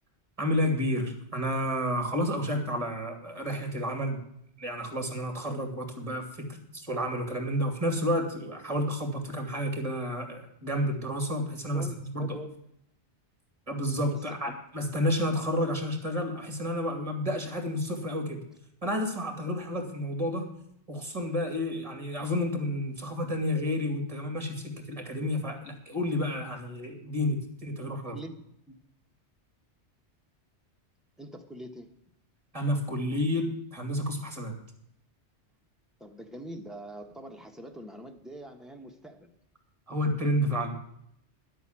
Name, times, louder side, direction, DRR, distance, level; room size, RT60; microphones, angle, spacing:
voice 1, 0.4-4.2 4.6-12.3 13.7-18.4 18.8-20.5 20.9-28.2 32.5-34.5 39.9-40.8, equal, 30° right, 4 dB, 2.5 m, -30 dB
voice 2, 11.7-12.5 14.5-14.6 28.1-28.3 28.7-28.8 31.2-31.9 36.0-39.3, right 1 dB, ahead, 2 dB, 1.2 m, -43 dB
11.0 x 8.3 x 7.5 m, 0.74 s
omnidirectional pair, 1.2 m